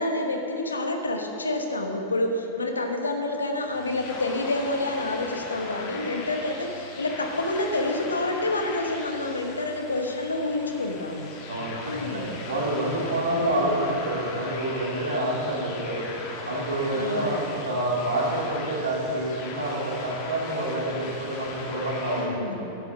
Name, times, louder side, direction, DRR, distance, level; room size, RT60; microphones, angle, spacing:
voice 1, 0.0-11.3 11.9-12.4 13.3-13.6 16.9-17.3 22.2-22.7, left 2 dB, 75° left, 4 dB, 1.1 m, -28 dB
sound 1, 3.7-22.3, left 3 dB, 45° left, 1.7 m, -39 dB
voice 2, 11.5-16.0 16.4-22.5, right 1 dB, 70° right, -4 dB, 2.7 m, -28 dB
11.0 x 8.0 x 6.1 m, 3.0 s
figure-of-eight pair, 90°, 0 cm